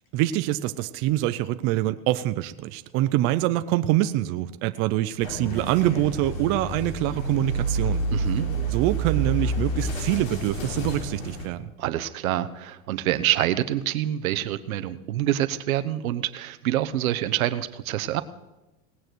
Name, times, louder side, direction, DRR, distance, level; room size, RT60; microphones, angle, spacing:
voice 1, 0.1-8.0 8.7-11.7, right 15 dB, 35° right, 11 dB, 0.5 m, -25 dB
sound 1, 5.2-11.5, right 2 dB, 70° left, 3.8 m, -29 dB
voice 2, 8.1-8.5 11.8-18.2, right 13 dB, 85° right, 11 dB, 1.1 m, -26 dB
19.0 x 9.2 x 4.6 m, 1.0 s
supercardioid pair, 145°, 40 cm